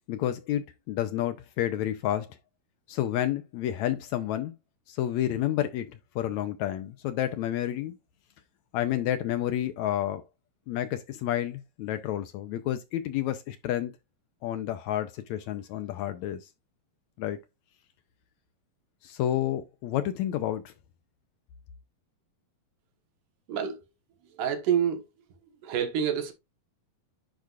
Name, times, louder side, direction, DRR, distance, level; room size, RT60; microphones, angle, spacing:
voice 1, 0.1-2.4 2.9-4.5 4.9-8.0 8.7-10.2 10.7-13.9 14.4-16.5 17.2-17.4 19.0-20.7, left 12 dB, 80° left, 1.7 m, -30 dB
voice 2, 24.4-25.0 25.6-26.3, right 8 dB, 70° right, 2.8 m, -27 dB
10.5 x 4.8 x 2.4 m
omnidirectional pair, 3.9 m